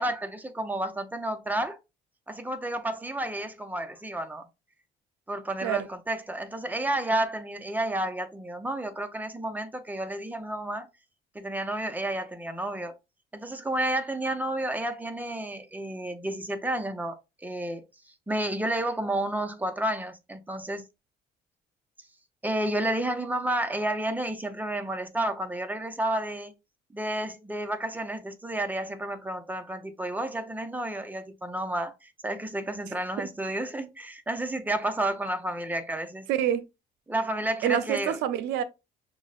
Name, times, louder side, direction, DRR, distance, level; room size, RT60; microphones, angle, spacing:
voice 1, 0.0-1.8 2.3-4.5 5.3-10.9 11.3-13.0 13.3-17.8 18.3-20.8 22.4-26.5 26.9-36.3 37.1-38.2, right 1 dB, 10° right, 0.5 m, -31 dB
voice 2, 36.3-36.6 37.6-38.6, right 10 dB, 85° right, 0.6 m, -26 dB
6.1 x 2.1 x 2.3 m
cardioid pair, 110°, 17 cm